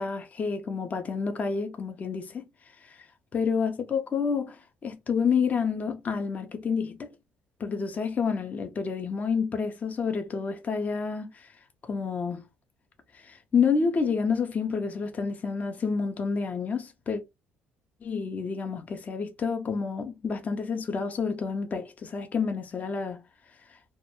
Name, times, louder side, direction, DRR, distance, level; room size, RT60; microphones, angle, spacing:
voice 1, 0.0-7.1 7.6-12.5 13.1-17.2 18.0-23.8, left 5 dB, 40° left, 0.5 m, -29 dB
2.2 x 2.1 x 2.8 m
supercardioid pair, 75°, 4 cm